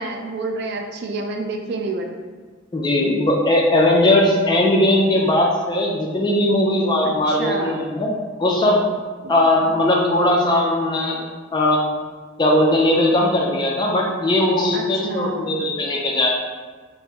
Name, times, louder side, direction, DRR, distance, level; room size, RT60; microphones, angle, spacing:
voice 1, 0.0-2.1 7.0-7.9 9.2-9.3 14.7-15.6, right 2 dB, 55° right, 3 dB, 0.4 m, -29 dB
voice 2, 2.7-8.1 8.4-8.9 9.3-11.2 11.5-11.8 12.4-16.3, left 1 dB, 20° left, -2 dB, 0.3 m, -18 dB
3.5 x 2.0 x 2.8 m, 1.4 s
head